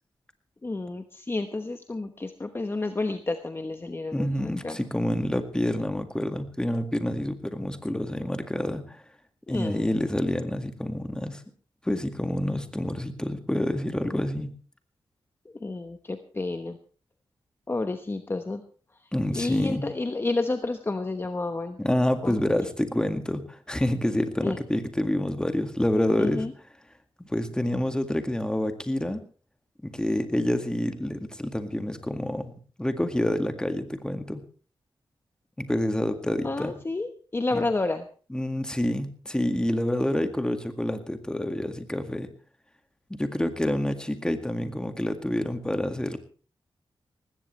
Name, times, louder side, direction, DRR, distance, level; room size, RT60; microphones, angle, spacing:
voice 1, 0.6-4.8 9.5-9.9 15.4-16.8 17.7-18.6 19.3-21.8 22.2-22.4 24.4-24.6 26.2-26.5 36.4-38.0, left 2 dB, 25° left, 7 dB, 1.1 m, -30 dB
voice 2, 4.1-9.0 9.5-11.4 11.8-14.6 19.1-19.9 21.8-26.4 27.3-29.2 29.8-32.5 32.8-34.4 35.6-36.7 37.5-37.7 38.3-42.3 43.1-46.2, left 1 dB, 10° left, 7 dB, 2.0 m, -28 dB
19.5 x 16.0 x 3.3 m, 0.40 s
wide cardioid pair, 85°, 9 cm